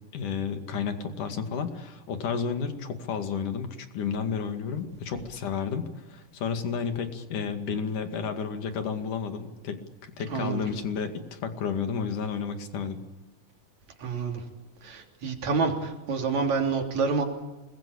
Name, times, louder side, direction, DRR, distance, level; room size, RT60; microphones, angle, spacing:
voice 1, 0.1-13.0, left 6 dB, 70° left, 7 dB, 3.7 m, -32 dB
voice 2, 10.3-10.6 14.0-14.4 14.8-17.2, right 4 dB, 55° right, 3 dB, 4.6 m, -28 dB
27.0 x 21.0 x 8.7 m, 1.1 s
omnidirectional pair, 3.8 m